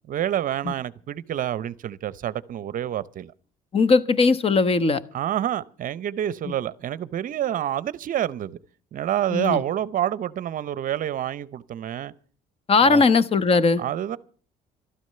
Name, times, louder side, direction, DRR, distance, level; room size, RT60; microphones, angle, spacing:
voice 1, 0.1-3.3 5.1-8.6 8.9-12.1 12.8-13.0 13.8-14.2, right 11 dB, 55° right, 0.7 m, -28 dB
voice 2, 3.7-5.0 9.3-9.6 12.7-13.8, left 4 dB, 35° left, 1.0 m, -19 dB
13.0 x 12.5 x 6.7 m
cardioid pair, 110°, 17 cm